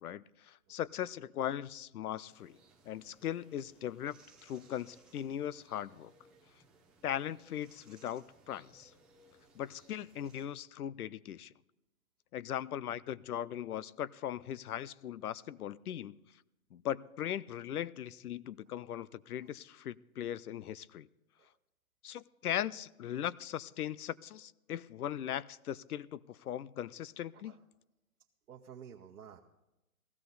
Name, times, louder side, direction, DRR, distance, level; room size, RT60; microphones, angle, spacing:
voice 1, 0.0-2.6 2.9-4.2 4.4-6.1 7.0-8.9 9.6-11.5 12.3-16.2 16.7-21.1 22.0-27.6, left 10 dB, 85° left, 0.6 m, -39 dB
sound 1, 2.3-10.4, right 2 dB, ahead, 0.8 m, -64 dB
voice 2, 28.5-29.4, right 8 dB, 80° right, 1.1 m, -52 dB
16.0 x 13.5 x 4.0 m
hypercardioid pair, 150°, 44 cm